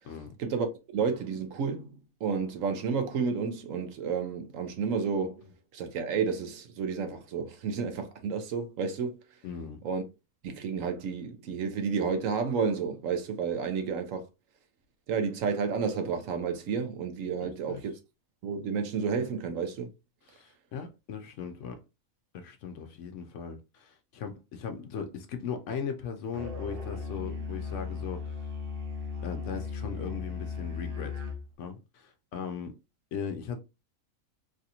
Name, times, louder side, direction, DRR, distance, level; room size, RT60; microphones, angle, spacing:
voice 1, 0.9-5.4 5.7-9.2 9.8-10.0 10.4-14.2 15.1-17.9 18.4-19.9, right 5 dB, 70° right, 1.0 m, -31 dB
voice 2, 9.4-9.8 17.4-17.8 20.3-21.8 22.3-28.4 29.2-31.2 31.6-32.7 33.1-33.6, left 6 dB, 70° left, 0.8 m, -38 dB
Musical instrument, 26.3-31.5, left 5 dB, 50° right, 0.8 m, -36 dB
3.2 x 2.5 x 2.8 m
omnidirectional pair, 1.4 m